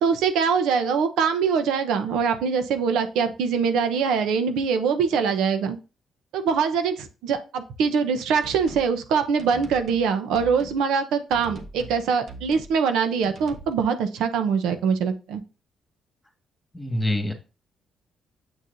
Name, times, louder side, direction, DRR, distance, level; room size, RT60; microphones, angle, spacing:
voice 1, 0.0-5.8 6.3-15.4, right 6 dB, 90° right, 8 dB, 0.8 m, -23 dB
sound 1, 8.4-8.9 9.4-10.1 10.3-10.8 11.3-12.0 12.3-12.8 13.2-13.7, right 3 dB, 55° right, 1.3 m, -41 dB
voice 2, 16.7-17.3, left 1 dB, 5° left, 4 dB, 1.8 m, -25 dB
7.3 x 6.4 x 2.7 m, 0.31 s
cardioid pair, 90°, 0 cm